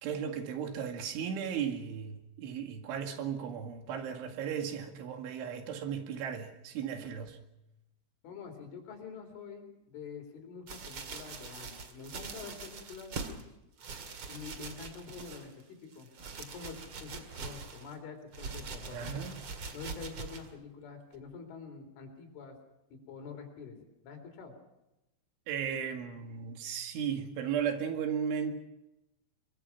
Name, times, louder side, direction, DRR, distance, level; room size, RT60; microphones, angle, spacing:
voice 1, 0.0-7.4 18.9-19.3 25.5-28.6, right 7 dB, 85° right, 4.6 m, -35 dB
voice 2, 8.2-13.4 14.3-16.1 16.4-19.0 19.7-22.6 22.9-23.8 24.0-24.5, left 5 dB, 85° left, 6.3 m, -46 dB
sound 1, 10.7-13.4 13.8-15.6 15.9-17.9 18.3-20.5 21.1-21.2, right 4 dB, 45° right, 1.7 m, -43 dB
24.0 x 23.0 x 5.9 m
omnidirectional pair, 5.4 m